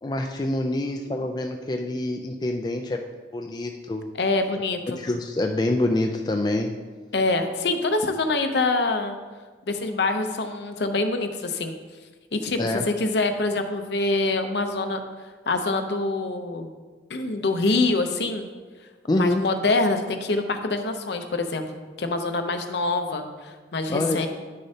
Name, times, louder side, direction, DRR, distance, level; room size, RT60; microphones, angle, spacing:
voice 1, 0.0-3.0 3.3-4.0 5.0-6.7 12.6-12.8 19.1-19.5 23.9-24.2, left 1 dB, 20° left, 3 dB, 0.3 m, -26 dB
voice 2, 4.2-5.0 7.1-9.2 9.7-11.7 12.3-15.0 15.5-16.7 17.1-18.5 19.1-21.6 22.0-24.3, left 3 dB, 65° left, 7 dB, 0.7 m, -25 dB
10.0 x 6.5 x 2.8 m, 1.4 s
head